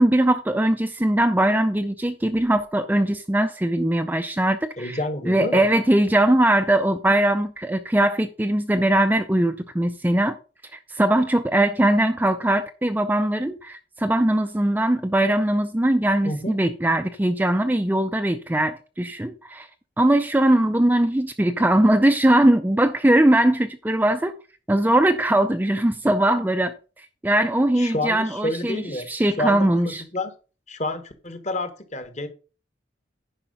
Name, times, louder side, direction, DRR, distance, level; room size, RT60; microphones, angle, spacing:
voice 1, 0.0-5.0 5.3-10.4 10.7-19.7 20.0-24.4 24.7-30.0, right 1 dB, 10° right, 0.4 m, -20 dB
voice 2, 4.8-5.6 16.2-16.5 27.8-29.1 29.4-30.3 30.7-32.3, left 1 dB, 35° left, 1.2 m, -29 dB
10.0 x 5.4 x 5.3 m
head